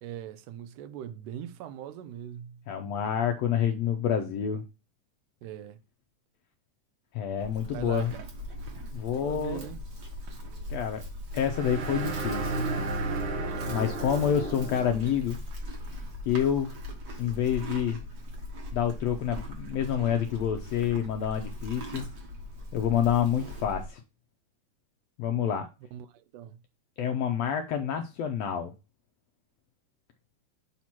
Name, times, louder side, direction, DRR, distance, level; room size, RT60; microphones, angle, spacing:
voice 1, 0.0-2.6 5.4-5.8 7.7-8.3 9.2-9.8 13.8-14.1 25.9-26.6, right 10 dB, 90° right, 2.2 m, -41 dB
voice 2, 2.7-4.6 7.1-8.1 8.9-9.7 10.7-11.0 11.3-12.7 13.7-15.4 16.3-16.7 17.2-18.0 18.7-22.1 22.7-24.0 25.2-25.7 27.0-28.7, left 8 dB, 80° left, 1.5 m, -28 dB
Livestock farm animals working animals, 7.4-23.9, left 1 dB, 45° right, 1.3 m, -40 dB
sound 1, 11.4-15.2, right 3 dB, 70° right, 1.2 m, -33 dB
7.0 x 2.9 x 5.9 m
omnidirectional pair, 3.6 m